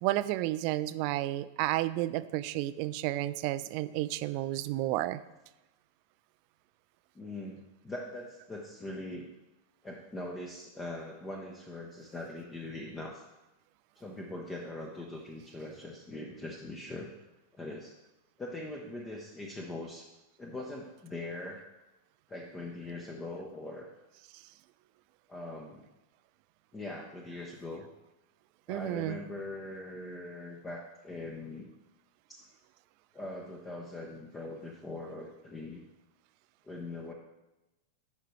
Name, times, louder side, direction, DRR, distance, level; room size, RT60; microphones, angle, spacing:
voice 1, 0.0-5.2 28.7-29.2, right 16 dB, 45° right, 15 dB, 0.3 m, -31 dB
voice 2, 7.1-9.3 9.8-13.2 14.0-17.1 17.5-17.9 18.4-20.1 20.4-21.6 22.3-23.9 25.3-25.9 26.7-27.9 28.7-31.7 32.3-32.5 33.1-35.8 36.6-37.1, left 2 dB, 15° left, 0 dB, 0.8 m, -41 dB
10.0 x 5.6 x 3.2 m, 0.99 s
figure-of-eight pair, 90°, 0 cm